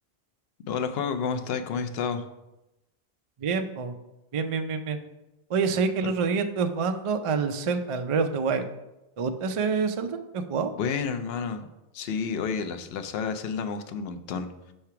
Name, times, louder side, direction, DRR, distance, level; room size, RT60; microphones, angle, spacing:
voice 1, 0.7-2.2 10.7-11.6 11.9-14.5, left 6 dB, 65° left, 8 dB, 0.8 m, -30 dB
voice 2, 3.4-3.9 4.3-5.0 5.5-8.7 9.2-10.7, right 5 dB, 55° right, 7 dB, 0.3 m, -27 dB
5.7 x 3.3 x 5.7 m, 0.95 s
omnidirectional pair, 1.1 m